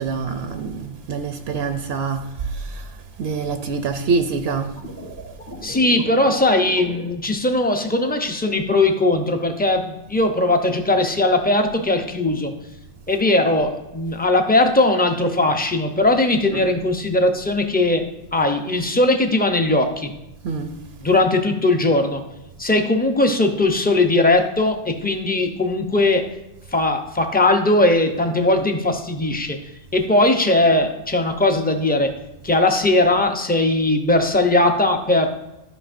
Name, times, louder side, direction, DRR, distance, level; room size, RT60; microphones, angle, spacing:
voice 1, 0.0-2.9 3.2-4.8 16.5-16.6 20.4-20.7, right 5 dB, 75° right, 0.8 m, -25 dB
sound 1, 4.8-7.0, equal, 70° left, 1.7 m, -35 dB
voice 2, 5.6-12.5 13.1-18.0 18.3-20.1 21.0-22.2 22.6-26.2 26.7-29.6 29.9-32.1 32.4-35.3, left 2 dB, 10° left, 0.5 m, -19 dB
12.0 x 5.9 x 2.5 m
omnidirectional pair, 1.1 m